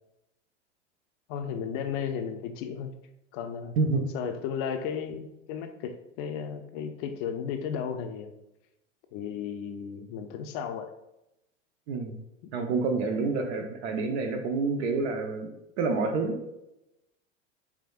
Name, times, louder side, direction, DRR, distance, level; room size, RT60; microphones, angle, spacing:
voice 1, 1.3-2.9 3.3-3.8 4.1-8.3 9.1-10.9, left 7 dB, 45° left, 7 dB, 0.5 m, -34 dB
voice 2, 3.8-4.1 11.9-12.1 12.5-16.4, right 4 dB, 60° right, 5 dB, 0.8 m, -28 dB
4.9 x 3.4 x 2.3 m, 0.90 s
hypercardioid pair, 95°, 36 cm